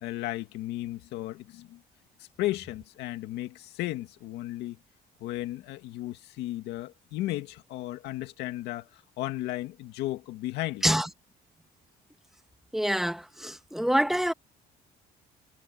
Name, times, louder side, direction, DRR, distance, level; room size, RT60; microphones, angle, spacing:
voice 1, 0.0-1.8 2.2-4.8 5.2-10.8, left 16 dB, 85° left, 2.1 m, -34 dB
voice 2, 12.7-14.3, equal, ahead, 1.6 m, -26 dB
cardioid pair, 110°, 17 cm